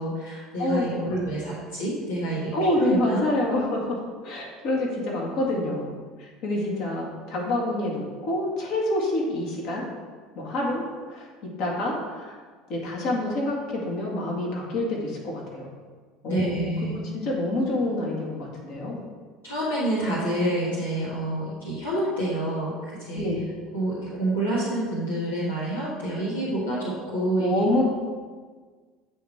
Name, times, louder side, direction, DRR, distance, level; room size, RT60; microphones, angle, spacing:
voice 1, 0.0-3.3 16.3-17.0 19.4-22.7 23.0-23.3 23.7-27.6, right 1 dB, 90° left, -7 dB, 1.4 m, -28 dB
voice 2, 0.6-1.1 2.5-4.0 4.2-5.9 6.4-9.8 10.4-10.8 11.1-11.3 11.6-12.4 12.7-15.7 16.2-16.5 17.1-19.0 23.1-23.4 27.4-27.8, left 1 dB, 60° left, -2 dB, 1.9 m, -27 dB
8.4 x 3.7 x 4.3 m, 1.5 s
hypercardioid pair, 75°, 0 cm